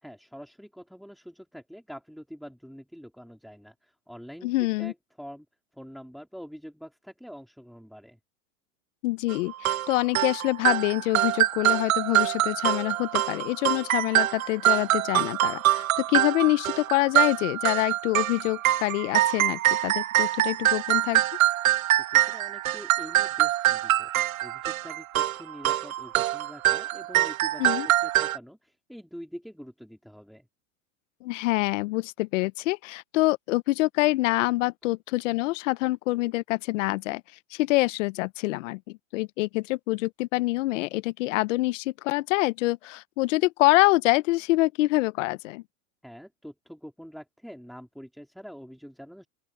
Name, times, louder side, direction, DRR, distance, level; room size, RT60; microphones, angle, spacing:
voice 1, 0.0-5.5 5.7-8.2 21.6-24.1 24.4-30.5 46.0-49.3, equal, ahead, 3.0 m, -45 dB
voice 2, 4.4-4.9 9.0-21.2 27.6-27.9 31.2-37.2 37.5-45.6, left 20 dB, 65° left, 0.8 m, -26 dB
sound 1, 9.3-28.4, right 14 dB, 90° right, 1.2 m, -25 dB
open air
supercardioid pair, 130°, 40 cm